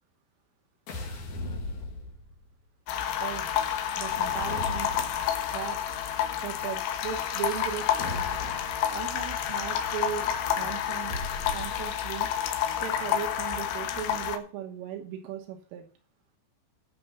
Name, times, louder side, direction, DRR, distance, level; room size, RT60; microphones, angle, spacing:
sound 1, 0.9-2.5 3.9-5.4 8.0-8.8 11.1-12.2, left 2 dB, 50° left, 2.6 m, -38 dB
sound 2, 2.9-14.4, left 9 dB, 80° left, 4.0 m, -29 dB
voice 1, 4.0-4.9 5.5-5.8 6.4-8.3 8.9-10.3 10.6-11.1 11.5-12.3 12.8-15.9, right 9 dB, 80° right, 5 dB, 3.6 m, -37 dB
14.5 x 6.6 x 5.8 m, 0.40 s
omnidirectional pair, 5.9 m